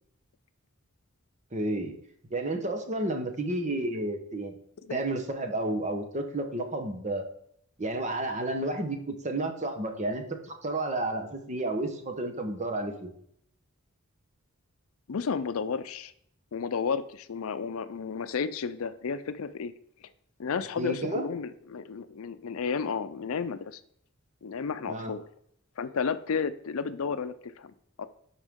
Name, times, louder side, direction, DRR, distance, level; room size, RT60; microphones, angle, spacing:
voice 1, 1.5-1.9 2.3-4.5 4.9-7.2 7.8-10.2 10.6-13.1 20.8-21.2 24.9-25.1, right 2 dB, 35° right, 5 dB, 1.0 m, -31 dB
voice 2, 15.1-16.1 16.5-19.7 20.4-23.8 24.4-25.2 25.8-27.7 28.0-28.1, left 5 dB, 75° left, 13 dB, 0.5 m, -32 dB
11.0 x 4.4 x 3.7 m, 0.68 s
head